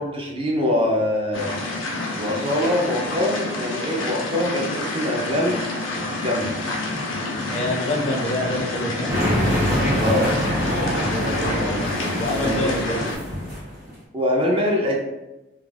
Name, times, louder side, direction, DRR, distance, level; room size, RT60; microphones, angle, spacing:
voice 1, 0.0-1.5 2.2-5.6 6.2-6.5 10.0-10.3 12.3-12.9 14.1-15.0, left 1 dB, 30° right, -1 dB, 0.4 m, -23 dB
sound 1, 1.3-13.2, left 2 dB, 85° left, 0.5 m, -28 dB
voice 2, 7.5-9.1 11.0-11.8 12.2-13.0, left 1 dB, 35° left, -1 dB, 0.4 m, -26 dB
sound 2, 9.1-13.9, equal, 50° right, 1.0 m, -24 dB
2.3 x 2.2 x 3.2 m, 0.99 s
head